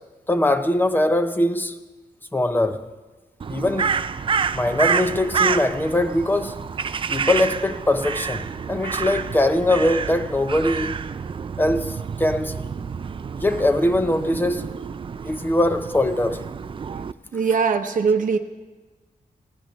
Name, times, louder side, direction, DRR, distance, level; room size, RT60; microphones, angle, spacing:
voice 1, 0.3-1.8 2.3-2.8 3.5-4.0 4.5-6.6 7.1-11.0 11.6-12.7 13.4-14.7 15.2-16.4, left 1 dB, 15° left, 0.7 m, -22 dB
Crow, 3.4-17.1, right 6 dB, 35° right, 0.4 m, -28 dB
voice 2, 17.3-18.4, right 5 dB, 60° right, 0.8 m, -20 dB
18.5 x 16.5 x 3.1 m
wide cardioid pair, 130°, 15 cm